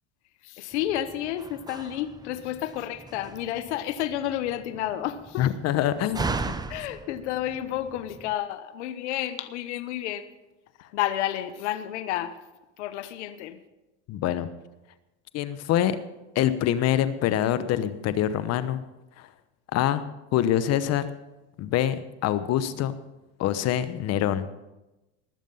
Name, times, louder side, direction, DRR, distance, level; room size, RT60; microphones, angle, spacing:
voice 1, 0.4-5.5 6.7-10.3 10.9-12.4 12.8-13.6, left 12 dB, 85° left, 12 dB, 1.0 m, -31 dB
Slam, 0.7-8.3, right 3 dB, 10° right, 0.7 m, -38 dB
voice 2, 5.4-6.3 14.1-14.5 15.3-16.0 16.3-18.8 19.2-19.3 19.7-20.0 20.3-21.1 21.6-23.0 23.4-24.5, left 11 dB, 50° left, 13 dB, 1.0 m, -25 dB
20.0 x 7.2 x 5.5 m, 1.0 s
supercardioid pair, 110°, 34 cm